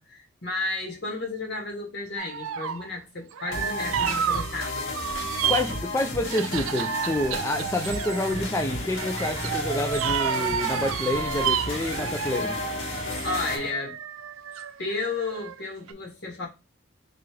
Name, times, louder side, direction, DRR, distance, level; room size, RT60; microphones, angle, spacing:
voice 1, 0.0-4.9 13.2-14.0 14.8-16.5, left 3 dB, 55° left, 1.6 m, -32 dB
sound 1, 2.2-2.9 3.3-5.8 6.3-8.5 8.9-15.6 15.9-16.0, right 8 dB, 80° right, 0.4 m, -31 dB
sound 2, 3.5-13.6, left 2 dB, 75° left, 1.9 m, -34 dB
voice 2, 5.5-13.0, left 1 dB, 15° left, 0.4 m, -28 dB
sound 3, 8.3-13.7, left 1 dB, 30° left, 1.1 m, -39 dB
3.7 x 3.3 x 3.3 m
head